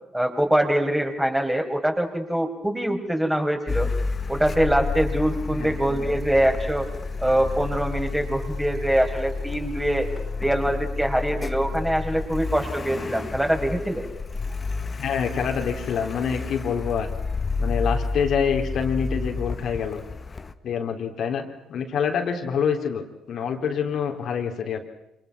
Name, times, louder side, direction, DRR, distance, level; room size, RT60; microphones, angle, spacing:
voice 1, 0.1-3.9 4.3-6.9 7.2-10.1 10.4-14.1, right 1 dB, 5° right, 3 dB, 5.7 m, -24 dB
Car, 3.7-20.5, left 4 dB, 30° left, 1.7 m, -30 dB
voice 2, 15.0-17.1 17.6-20.0 20.6-21.4 21.7-24.8, left 7 dB, 50° left, 3 dB, 3.7 m, -26 dB
28.5 x 28.0 x 6.1 m, 0.86 s
figure-of-eight pair, 45°, 0 cm